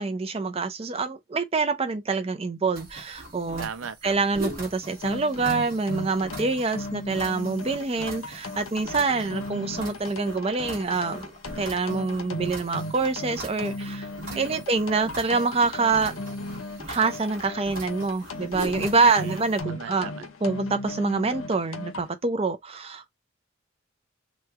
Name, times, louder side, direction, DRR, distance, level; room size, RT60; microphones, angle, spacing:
voice 1, 0.0-3.7 4.0-11.3 11.6-14.1 14.4-16.1 16.9-20.1 20.4-23.1, right 4 dB, 30° right, 0.5 m, -26 dB
sound 1, 2.7-19.6, right 1 dB, 45° right, 1.0 m, -41 dB
voice 2, 3.6-4.3 14.3-14.7 19.0-20.3, right 6 dB, 85° right, 0.6 m, -39 dB
sound 2, 4.9-22.1, left 2 dB, 85° left, 0.7 m, -37 dB
3.1 x 2.2 x 3.5 m
head